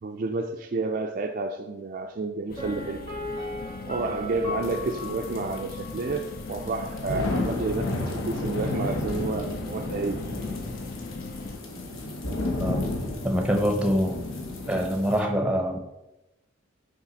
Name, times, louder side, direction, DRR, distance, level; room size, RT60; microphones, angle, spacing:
voice 1, 0.0-3.0 3.8-10.2, right 3 dB, 45° right, 5 dB, 0.3 m, -30 dB
sound 1, 2.5-11.6, left 3 dB, 45° left, 0.4 m, -39 dB
Piano, 2.6-6.3 6.6-6.7, left 2 dB, 25° left, 1.5 m, -37 dB
sound 2, 4.6-15.2, left 2 dB, 85° left, 1.1 m, -32 dB
voice 2, 13.2-14.2 14.7-15.8, equal, 5° right, 4 dB, 0.7 m, -25 dB
5.8 x 4.8 x 4.0 m, 0.93 s
head